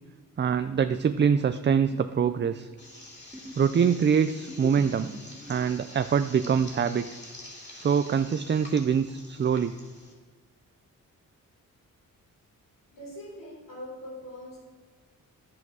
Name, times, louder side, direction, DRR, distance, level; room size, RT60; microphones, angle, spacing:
voice 1, 0.4-2.7 3.6-5.1 5.5-7.1 7.7-9.8, right 7 dB, 35° right, 10 dB, 0.4 m, -24 dB
sound 1, 1.6-3.0 3.3-6.8, equal, 5° right, 1.3 m, -44 dB
sound 2, 2.8-10.1, left 1 dB, 30° left, 3.2 m, -47 dB
voice 2, 12.9-14.6, left 1 dB, 75° left, -1 dB, 3.8 m, -42 dB
10.5 x 7.6 x 6.2 m, 1.5 s
cardioid pair, 105°, 34 cm